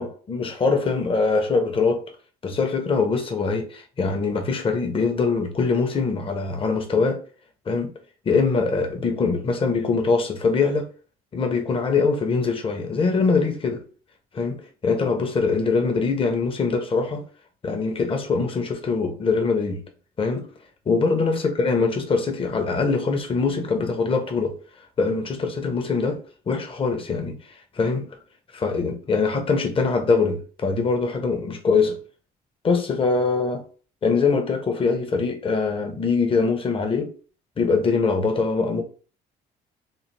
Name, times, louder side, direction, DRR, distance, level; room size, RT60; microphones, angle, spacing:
voice 1, 0.0-2.0 2.4-7.2 7.7-7.9 8.2-10.9 11.3-13.9 14.3-17.2 17.6-19.8 20.2-20.5 20.9-24.6 25.0-26.2 26.5-27.4 27.8-28.2 28.5-32.0 32.6-33.6 34.0-37.1 37.6-38.8, left 4 dB, 30° left, 1.1 m, -23 dB
5.6 x 2.1 x 3.4 m
cardioid pair, 110°, 17 cm